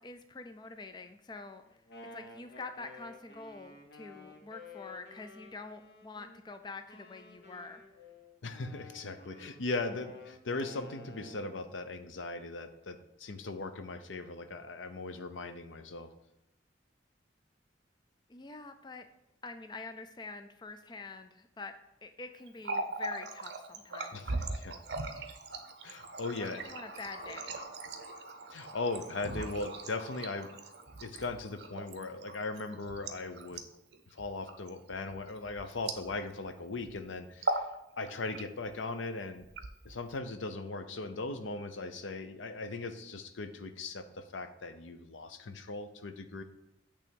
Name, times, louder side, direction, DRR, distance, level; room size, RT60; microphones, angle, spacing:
voice 1, 0.0-1.6 2.1-7.8 18.3-19.1 19.4-21.7 22.0-24.3 26.3-27.6, left 3 dB, 25° left, 8 dB, 0.4 m, -46 dB
Wind instrument woodwind instrument, 1.7-6.4 6.9-11.6, left 2 dB, 55° left, 0.9 m, -52 dB
voice 2, 8.4-16.1 24.1-24.8 25.8-26.6 28.5-30.5 31.0-33.6 34.1-37.7 38.0-39.5 39.8-46.4, left 3 dB, 85° left, 9 dB, 0.7 m, -39 dB
Water tap faucet, 22.5-36.5 36.8-37.0 37.3-37.7 38.1-38.7 39.4-40.2, right 2 dB, 60° right, 0.7 m, -40 dB
8.5 x 3.5 x 5.3 m, 0.88 s
head